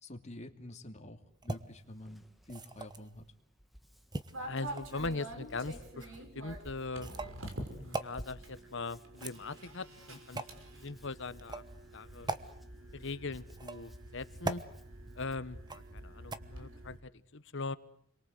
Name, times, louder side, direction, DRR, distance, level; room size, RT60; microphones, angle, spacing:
voice 1, 0.0-3.2, left 1 dB, 35° left, 4 dB, 2.8 m, -48 dB
Hands, 1.3-15.4, equal, ahead, 1.6 m, -56 dB
sound 1, 1.4-1.6 2.4-3.1 4.1-5.0 6.0-6.2 7.0-7.4 7.9-8.1 9.1-9.7 10.3-10.6 11.4-11.7 12.3-12.4 13.5-14.0 14.4-14.7 15.7-16.0 16.3-16.4, right 2 dB, 20° right, 1.2 m, -39 dB
sound 2, 4.3-17.0, right 1 dB, 80° right, 5.6 m, -48 dB
voice 2, 4.5-7.1 7.6-10.4 10.8-11.6 11.9-12.3 12.9-14.6 15.1-17.8, left 3 dB, 65° left, 14 dB, 1.3 m, -40 dB
30.0 x 23.0 x 8.1 m, 0.67 s
head